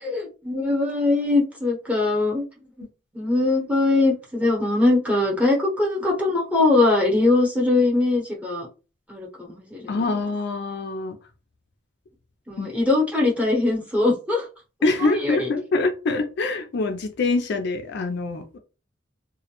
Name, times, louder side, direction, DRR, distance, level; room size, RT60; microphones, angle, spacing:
voice 1, 0.0-2.4 2.8-2.9 3.1-8.7 9.1-9.9 12.5-14.5 15.0-15.5, left 2 dB, 5° right, -3 dB, 0.8 m, -21 dB
voice 2, 9.9-11.2 12.6-12.7 14.8-18.6, left 3 dB, 55° left, 6 dB, 0.4 m, -25 dB
2.2 x 2.0 x 2.9 m, 0.33 s
head